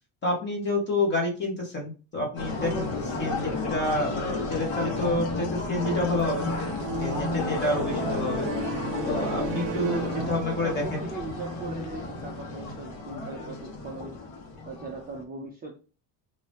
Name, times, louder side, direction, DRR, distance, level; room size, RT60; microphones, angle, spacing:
voice 1, 0.2-6.5 7.0-8.5 9.0-11.1, left 2 dB, 25° left, 0 dB, 1.1 m, -29 dB
sound 1, 2.4-15.2, left 3 dB, 75° left, 1.1 m, -32 dB
sound 2, 6.2-10.9, right 11 dB, 90° right, 0.6 m, -36 dB
voice 2, 9.8-14.2 14.7-15.8, right 4 dB, 20° right, -1 dB, 0.4 m, -39 dB
2.8 x 2.6 x 3.4 m, 0.35 s
cardioid pair, 170°, 45 cm